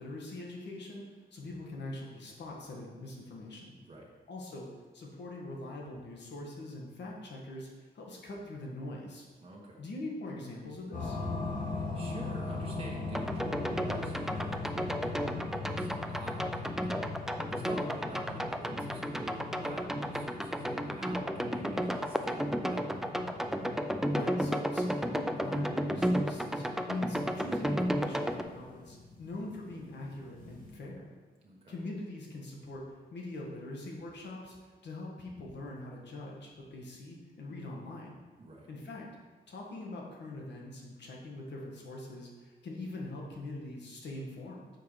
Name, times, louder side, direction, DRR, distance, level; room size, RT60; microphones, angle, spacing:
voice 1, 0.0-3.7 4.3-4.7 4.9-9.2 9.8-11.2 24.1-31.0 31.7-32.8 33.1-34.5 34.8-38.1 38.7-39.1 39.5-44.7, left 2 dB, 75° left, -1 dB, 1.5 m, -42 dB
voice 2, 9.4-9.8 11.6-16.8 17.6-22.9 31.4-31.7 38.4-38.7, right 1 dB, 30° right, -3 dB, 1.2 m, -47 dB
sound 1, 10.9-30.7, left 3 dB, 50° left, 1.9 m, -41 dB
sound 2, 13.1-28.4, equal, ahead, 0.3 m, -33 dB
6.7 x 4.7 x 4.9 m, 1.3 s
wide cardioid pair, 140°, 18 cm